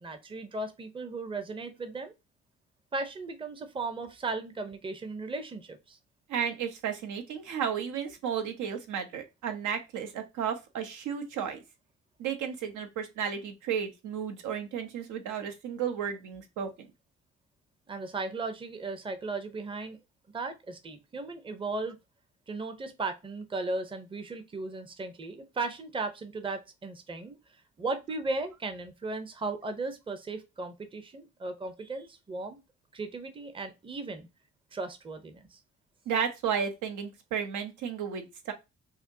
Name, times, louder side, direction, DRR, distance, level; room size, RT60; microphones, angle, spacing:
voice 1, 0.0-2.1 2.9-6.0 17.9-20.0 20.3-22.0 22.5-27.4 27.8-32.6 32.9-34.3 34.7-35.6, right 3 dB, 15° right, 8 dB, 0.6 m, -36 dB
voice 2, 6.3-11.6 12.2-16.9 36.1-38.5, right 7 dB, 80° right, 6 dB, 0.9 m, -33 dB
4.8 x 2.0 x 2.7 m, 0.24 s
cardioid pair, 90°, 30 cm